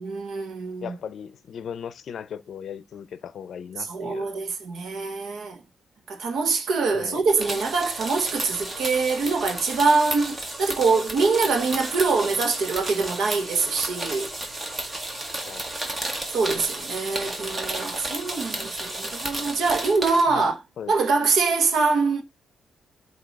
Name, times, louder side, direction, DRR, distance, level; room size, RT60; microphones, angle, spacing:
voice 1, 0.0-0.9 3.8-5.6 6.1-14.3 16.3-20.5 20.9-22.2, right 4 dB, 65° right, 1.2 m, -24 dB
voice 2, 0.8-4.3 6.9-7.2 15.4-15.7 20.3-20.9, left 8 dB, 55° left, 0.6 m, -37 dB
sound 1, 7.3-20.2, right 1 dB, 20° right, 1.3 m, -33 dB
8.1 x 2.8 x 4.6 m
cardioid pair, 140°, 0 cm